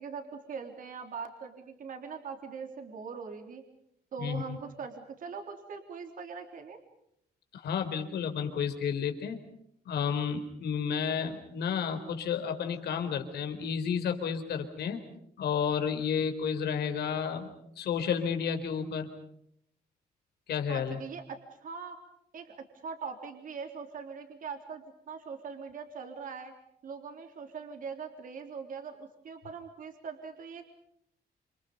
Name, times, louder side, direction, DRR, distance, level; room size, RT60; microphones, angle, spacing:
voice 1, 0.0-3.6 4.1-6.8 20.7-22.0 22.3-26.5 26.8-30.7, right 5 dB, 55° right, 4 dB, 3.5 m, -42 dB
voice 2, 4.2-4.6 7.5-9.4 9.9-15.0 15.4-17.5 17.8-19.1 20.5-21.0, left 7 dB, 85° left, 7 dB, 4.1 m, -31 dB
28.5 x 28.0 x 5.4 m, 0.72 s
cardioid pair, 150°, 17 cm